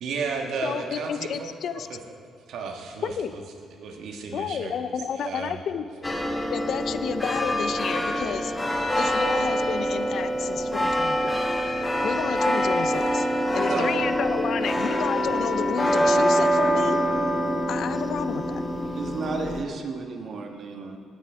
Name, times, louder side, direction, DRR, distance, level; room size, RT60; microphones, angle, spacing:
voice 1, 0.0-1.5 1.9-2.0 2.5-3.4 3.8-4.9 5.1-5.6 13.7-14.0, right 5 dB, 80° right, 2 dB, 1.5 m, -33 dB
voice 2, 0.6-1.9 3.0-3.3 4.3-5.9 6.5-8.5 9.0-11.4 12.0-13.3 13.5-17.0 17.7-18.6, left 7 dB, 65° left, 12 dB, 0.5 m, -31 dB
sound 1, 6.0-19.6, equal, 20° left, 1.1 m, -25 dB
voice 3, 18.9-21.0, right 4 dB, 60° right, 3 dB, 1.5 m, -33 dB
17.5 x 9.3 x 3.6 m, 2.2 s
cardioid pair, 90°, 0 cm